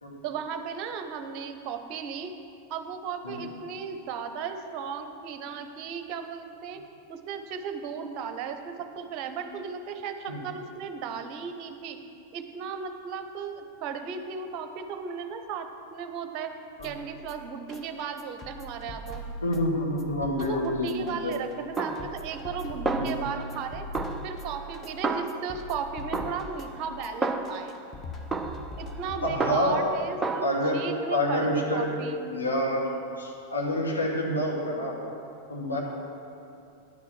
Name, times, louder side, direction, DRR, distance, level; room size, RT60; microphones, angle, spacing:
voice 1, 0.2-2.3 2.7-6.8 7.1-12.0 12.3-16.5 16.8-19.2 20.4-23.9 24.2-27.8 28.8-30.4 30.7-32.2, right 6 dB, 40° right, 7 dB, 0.8 m, -35 dB
sound 1, 16.8-29.8, equal, 25° left, 1.0 m, -41 dB
voice 2, 19.4-21.3 23.0-23.1 29.2-29.9 30.4-30.8 31.1-32.0 32.3-32.9 33.2-34.9 35.5-35.8, left 1 dB, 75° left, -3 dB, 2.0 m, -27 dB
Snare drum, 21.8-22.6 22.9-23.6 23.9-25.7 26.1-27.8 28.3-29.9 30.2-30.5, right 3 dB, 10° right, 0.6 m, -32 dB
10.5 x 6.0 x 7.4 m, 2.6 s
figure-of-eight pair, 90°, 0 cm